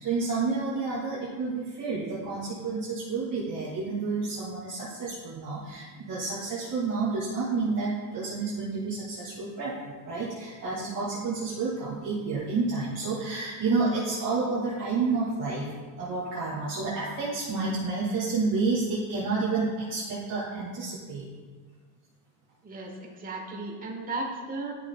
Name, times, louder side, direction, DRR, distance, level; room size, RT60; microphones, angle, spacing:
voice 1, 0.0-15.7 16.0-21.2, right 4 dB, 40° right, -9 dB, 2.2 m, -30 dB
voice 2, 22.6-24.8, right 2 dB, 15° right, 0 dB, 1.1 m, -35 dB
12.0 x 6.3 x 2.2 m, 1.4 s
cardioid pair, 145°, 49 cm